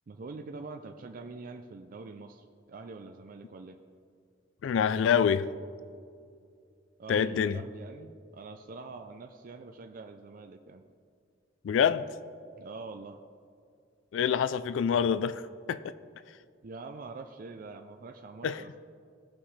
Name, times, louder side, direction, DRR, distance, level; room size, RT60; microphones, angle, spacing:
voice 1, 0.1-3.8 7.0-10.8 12.6-13.2 16.6-18.7, right 3 dB, 50° right, 0.4 m, -44 dB
voice 2, 4.6-5.5 7.1-7.6 11.6-12.0 14.1-15.4 15.7-15.9 18.4-18.6, left 7 dB, 80° left, 0.3 m, -26 dB
17.5 x 6.0 x 3.2 m
head